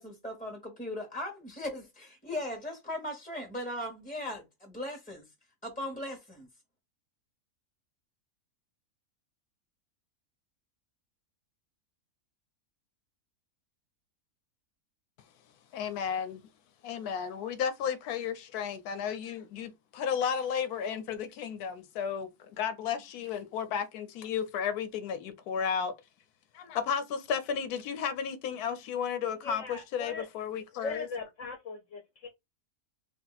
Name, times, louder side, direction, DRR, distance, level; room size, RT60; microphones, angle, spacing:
voice 1, 0.0-5.3 5.6-6.5, left 1 dB, 5° left, 0.8 m, -38 dB
voice 2, 15.7-16.5 16.8-25.9 26.5-31.1, left 7 dB, 85° left, 1.2 m, -33 dB
voice 3, 29.4-30.3 30.8-32.3, left 4 dB, 60° left, 1.0 m, -39 dB
3.7 x 2.5 x 3.9 m
omnidirectional pair, 1.6 m